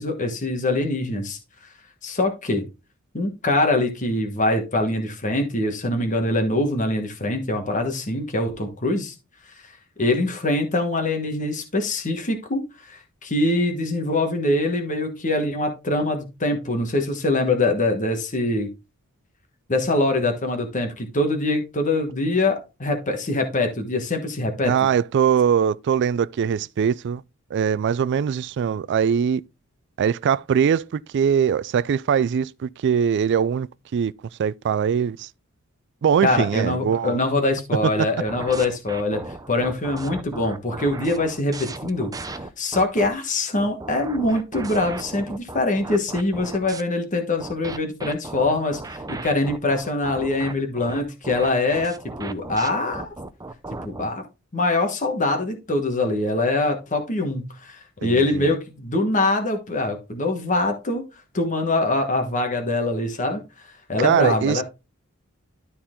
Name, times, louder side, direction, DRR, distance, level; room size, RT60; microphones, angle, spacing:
voice 1, 0.0-1.7 2.0-2.6 3.1-9.1 9.5-9.7 10.0-18.7 19.7-24.7 36.2-53.1 53.8-54.2 54.5-61.0 61.3-64.6, left 2 dB, 35° left, 1.4 m, -24 dB
voice 2, 24.6-27.2 27.5-29.4 30.0-34.1 34.4-35.3 36.0-37.2 38.0-38.1 58.0-58.5 64.0-64.6, right 7 dB, 55° right, 0.3 m, -21 dB
sound 1, 38.3-43.1 43.6-46.8 47.4-54.1, right 2 dB, 15° right, 0.7 m, -36 dB
12.0 x 4.3 x 3.7 m
head